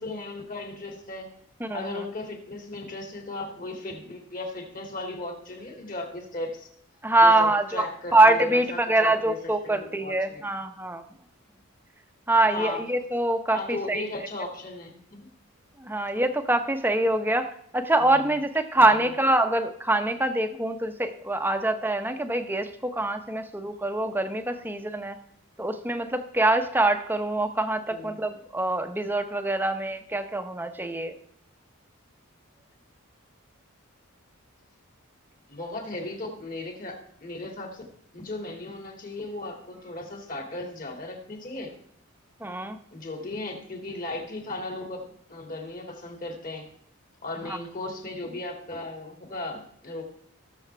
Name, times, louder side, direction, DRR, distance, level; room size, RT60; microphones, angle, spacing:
voice 1, 0.0-1.3 1.7-6.7 7.2-10.5 12.4-12.8 13.5-15.3 18.0-18.4 18.7-19.1 27.9-28.2 35.5-37.8 38.1-41.7 42.9-46.7 47.2-50.0, left 2 dB, 40° left, 2 dB, 2.4 m, -36 dB
voice 2, 1.6-2.0 7.0-7.9 8.1-11.0 12.3-14.0 15.8-17.5 17.7-25.2 25.6-31.1 42.4-42.8, right 2 dB, 10° right, 7 dB, 0.8 m, -24 dB
18.5 x 7.1 x 3.4 m, 0.67 s
head